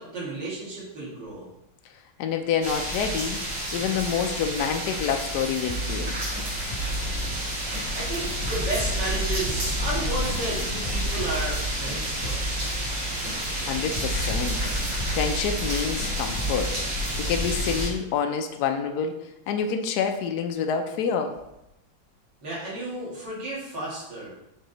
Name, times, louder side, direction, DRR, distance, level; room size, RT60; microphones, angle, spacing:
voice 1, 0.0-1.5 7.9-12.6 22.4-24.3, right 2 dB, 55° right, -6 dB, 2.7 m, -33 dB
voice 2, 2.2-3.4 3.7-6.2 13.6-14.6 15.1-16.8 17.2-19.1 19.5-21.3, left 7 dB, 85° left, 5 dB, 0.8 m, -27 dB
sound 1, 2.6-17.9, equal, 75° right, 2.8 m, -30 dB
sound 2, 5.7-8.2 8.4-13.7 13.9-16.7, right 1 dB, 5° right, 1.0 m, -34 dB
6.5 x 3.8 x 4.0 m, 0.86 s
omnidirectional pair, 2.4 m